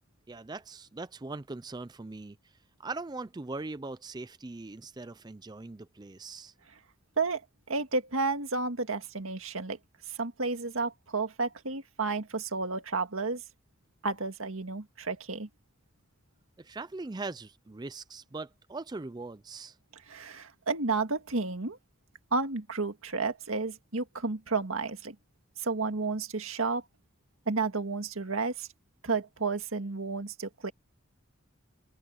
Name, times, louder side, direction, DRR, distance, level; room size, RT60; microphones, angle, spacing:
voice 1, 0.3-6.5 16.6-19.8, right 3 dB, 20° right, 0.4 m, -41 dB
voice 2, 7.7-9.8 10.1-13.4 14.0-15.5 20.1-21.8 22.3-25.2 25.6-26.8 27.5-28.7 29.0-30.7, right 3 dB, 90° right, 1.9 m, -31 dB
open air
head